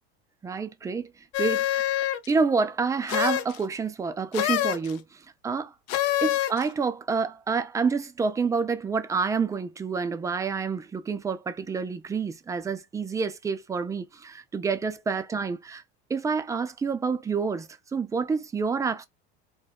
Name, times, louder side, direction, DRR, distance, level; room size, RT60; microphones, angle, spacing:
voice 1, 0.4-1.1 1.4-1.8 2.3-5.7 6.2-15.8 16.1-19.0, right 5 dB, 10° right, 0.3 m, -28 dB
sound 1, 1.3-2.3 3.1-3.6 4.3-4.9 5.9-6.7, left 13 dB, 50° left, 0.4 m, -26 dB
2.3 x 2.2 x 3.4 m
hypercardioid pair, 90°, 33 cm